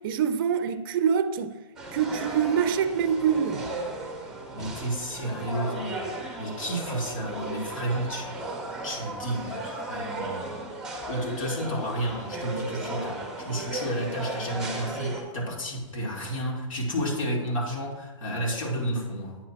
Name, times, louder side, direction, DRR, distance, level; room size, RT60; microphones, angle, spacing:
voice 1, 0.0-1.5 1.9-3.7, right 7 dB, 45° right, 0.5 m, -25 dB
sound 1, 1.8-15.2, right 2 dB, 5° right, 0.9 m, -35 dB
voice 2, 4.5-6.0 6.4-8.4 8.8-10.4 10.8-19.4, right 1 dB, 80° left, 2.3 m, -31 dB
8.5 x 3.0 x 5.7 m
hypercardioid pair, 150°, 17 cm